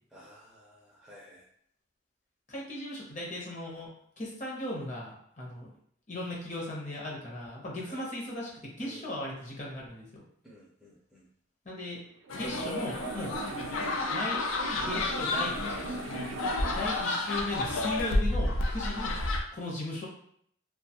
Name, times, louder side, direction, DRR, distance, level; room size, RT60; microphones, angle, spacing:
voice 1, 0.1-1.4 7.8-8.0 8.8-9.0 10.4-11.3 18.8-19.1, equal, ahead, -5 dB, 0.4 m, -52 dB
voice 2, 2.5-3.9 4.2-5.7 6.1-10.1 11.6-12.0 12.3-13.3 14.1-14.4 14.6-16.0 16.7-19.2 19.5-20.1, left 1 dB, 40° left, -3 dB, 0.7 m, -37 dB
sound 1, 12.1-17.0, right 4 dB, 90° right, 0.4 m, -41 dB
sound 2, 12.3-19.4, left 2 dB, 90° left, 0.4 m, -31 dB
2.5 x 2.3 x 2.8 m, 0.66 s
head